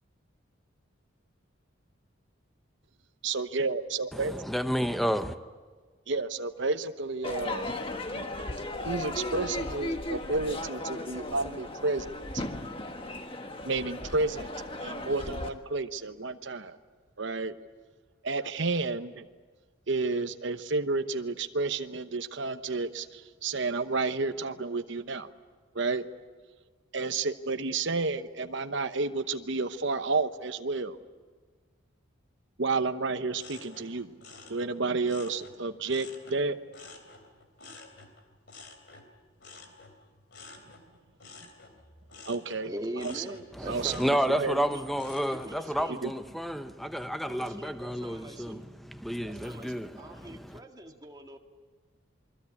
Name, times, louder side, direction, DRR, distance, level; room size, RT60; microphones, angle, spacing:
voice 1, 3.2-4.3 6.1-7.7 8.1-8.3 8.8-12.4 13.6-14.5 14.8-16.8 17.2-17.6 18.2-19.2 19.9-25.3 25.7-26.1 26.9-31.0 32.6-34.1 34.5-36.6 42.3-43.2 43.7-44.6 46.0-46.1, right 3 dB, 60° right, 1.0 m, -31 dB
voice 2, 4.1-5.4 43.5-50.6, equal, ahead, 0.8 m, -31 dB
Crowd / Fireworks, 7.2-15.5, left 1 dB, 25° left, 1.5 m, -36 dB
sound 1, 33.4-36.4 36.7-45.6 46.0-46.5, left 3 dB, 55° left, 3.2 m, -51 dB
voice 3, 42.6-44.8 45.3-46.0 47.3-48.7 49.3-51.4, right 1 dB, 20° right, 1.9 m, -42 dB
28.0 x 22.0 x 8.5 m
head